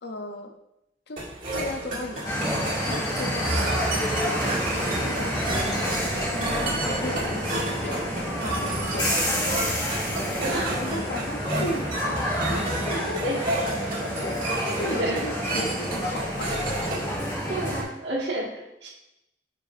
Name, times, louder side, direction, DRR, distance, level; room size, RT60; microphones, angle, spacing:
voice 1, 0.0-0.5 1.1-1.2 1.5-9.5 10.3-10.4 10.8-13.4 14.2-16.7 17.8-18.0, left 2 dB, 60° left, 5 dB, 0.6 m, -36 dB
sound 1, 1.2-17.2, right 1 dB, 45° right, 1.9 m, -31 dB
sound 2, 2.2-17.8, equal, 25° left, 2.3 m, -29 dB
voice 2, 10.4-10.7 13.2-13.4 15.0-15.2 17.5-18.9, right 1 dB, 65° right, -4 dB, 1.7 m, -30 dB
8.5 x 4.7 x 2.5 m, 0.86 s
head